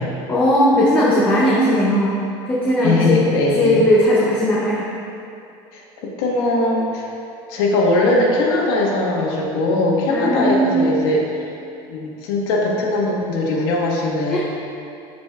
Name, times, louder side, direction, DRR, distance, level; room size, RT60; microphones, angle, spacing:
voice 1, 0.3-2.2 2.5-3.2 3.6-4.9 10.1-10.8 14.3-14.4, equal, 15° left, -7 dB, 0.7 m, -17 dB
voice 2, 2.8-3.9 5.7-7.1 7.5-11.4 11.9-14.4, left 2 dB, 80° left, -2 dB, 1.4 m, -20 dB
13.0 x 5.1 x 2.4 m, 2.6 s
cardioid pair, 175°, 12 cm